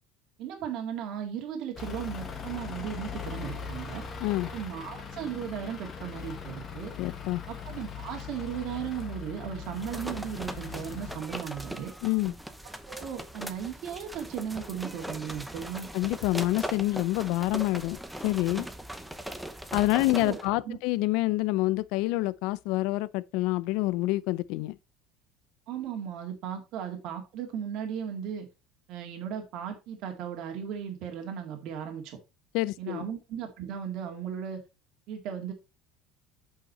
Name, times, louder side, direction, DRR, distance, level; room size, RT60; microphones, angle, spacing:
voice 1, 0.4-4.0 4.5-6.9 7.5-11.9 12.8-15.9 20.2-20.4 20.7-20.8 25.7-28.5 28.9-32.2 32.8-34.6 35.1-35.5, right 8 dB, 50° right, 1.9 m, -36 dB
Truck / Idling, 1.8-11.2, left 6 dB, 25° left, 1.4 m, -40 dB
voice 2, 4.2-4.5 7.0-7.4 12.0-12.3 15.9-18.7 19.7-24.7 32.5-33.0, left 19 dB, 65° left, 0.5 m, -27 dB
sound 1, 9.6-20.5, right 1 dB, ahead, 0.7 m, -40 dB
8.2 x 5.6 x 4.2 m
cardioid pair, 170°, 0 cm